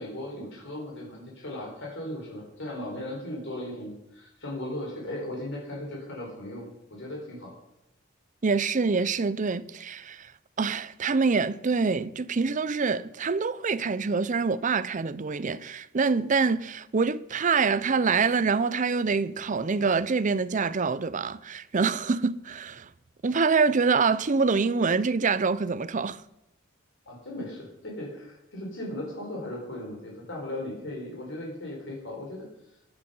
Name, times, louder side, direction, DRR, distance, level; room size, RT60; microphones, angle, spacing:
voice 1, 0.0-7.5 27.1-32.4, left 1 dB, 65° left, 4.1 m, -37 dB
voice 2, 8.4-10.3 10.6-22.9 23.2-26.2, right 4 dB, 40° right, 0.5 m, -25 dB
14.5 x 11.0 x 5.5 m
head